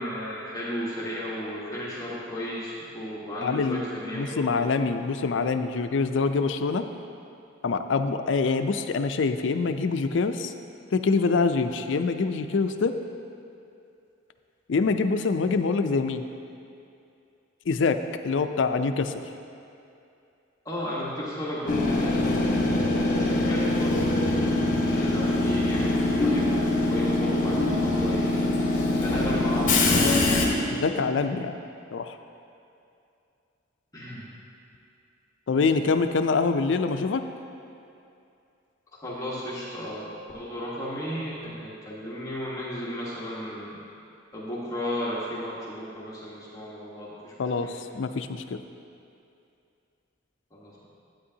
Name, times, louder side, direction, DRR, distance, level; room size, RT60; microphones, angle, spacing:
voice 1, 0.0-4.7 20.6-24.1 24.8-28.4 29.0-30.2 33.9-34.3 39.0-40.1 40.3-43.8 44.3-47.3 47.6-47.7 50.5-50.9, equal, 20° left, -7 dB, 1.3 m, -34 dB
voice 2, 3.4-6.9 7.6-10.5 10.9-12.9 14.7-16.2 17.7-18.0 18.2-19.1 30.7-31.6 31.9-32.2 35.5-37.2 47.4-48.6, left 4 dB, 70° left, 8 dB, 0.4 m, -25 dB
Train / Subway metro underground, 21.7-30.5, left 2 dB, 45° left, 1.1 m, -23 dB
11.5 x 8.7 x 2.8 m, 2.6 s
head